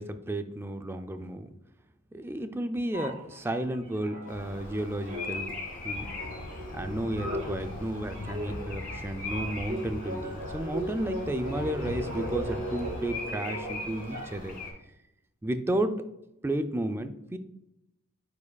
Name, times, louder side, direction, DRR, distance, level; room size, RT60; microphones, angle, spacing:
voice 1, 0.0-1.5 2.1-5.5 5.8-6.1 6.7-14.6 15.4-16.0 16.4-17.4, right 1 dB, 10° right, 8 dB, 0.3 m, -32 dB
sound 1, 2.9-4.7 5.0-14.5, right 1 dB, 30° right, 2.2 m, -38 dB
Bird vocalization bird call bird song, 4.3-14.7, left 2 dB, 40° left, 2.0 m, -41 dB
sound 2, 5.9-13.1, left 2 dB, 75° left, 0.6 m, -41 dB
9.4 x 4.8 x 2.3 m, 0.87 s
head